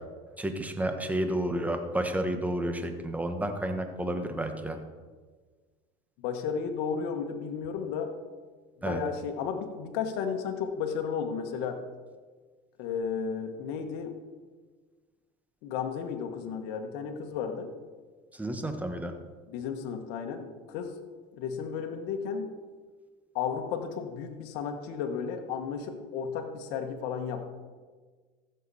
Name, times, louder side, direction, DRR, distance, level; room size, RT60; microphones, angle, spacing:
voice 1, 0.4-4.8 8.8-9.0 18.3-19.1, right 1 dB, 10° right, 6 dB, 1.2 m, -31 dB
voice 2, 6.2-8.1 8.8-11.8 12.8-14.2 15.6-17.7 19.5-20.9 21.4-22.5 23.3-27.5, left 6 dB, 70° left, 5 dB, 1.2 m, -33 dB
15.0 x 6.7 x 4.1 m, 1.4 s
supercardioid pair, 95°, 18 cm